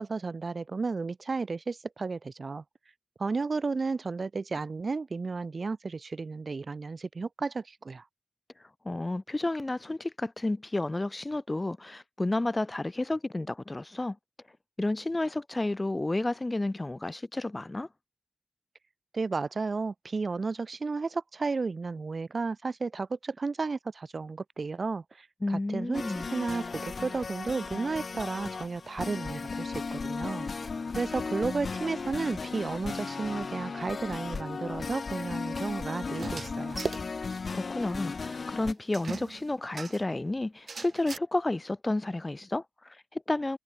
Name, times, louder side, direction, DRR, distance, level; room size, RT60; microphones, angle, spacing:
voice 1, 0.0-2.6 3.2-8.0 19.1-30.5 30.9-36.8, right 4 dB, 65° right, 0.6 m, -33 dB
voice 2, 8.8-14.2 14.8-17.9 25.4-26.3 37.5-43.6, left 2 dB, 30° left, 0.3 m, -31 dB
sound 1, 25.9-38.7, left 4 dB, 85° left, 1.1 m, -36 dB
sound 2, 36.1-37.5 37.8-37.9 38.1-38.2 38.9-40.1 40.7-41.2, right 4 dB, 85° right, 1.7 m, -38 dB
wide cardioid pair, 95°, 0 cm